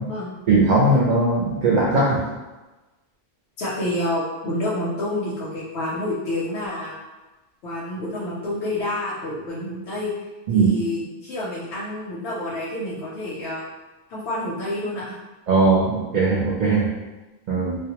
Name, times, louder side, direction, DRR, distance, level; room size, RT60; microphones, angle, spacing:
voice 1, 0.5-2.2 10.5-10.7 15.5-16.9 17.5-17.8, right 3 dB, 55° right, -6 dB, 0.5 m, -19 dB
voice 2, 3.6-7.0 7.6-10.1 10.5-13.6 14.1-15.1, left 1 dB, 85° left, -7 dB, 0.8 m, -28 dB
2.2 x 2.1 x 2.8 m, 1.1 s
omnidirectional pair, 1.1 m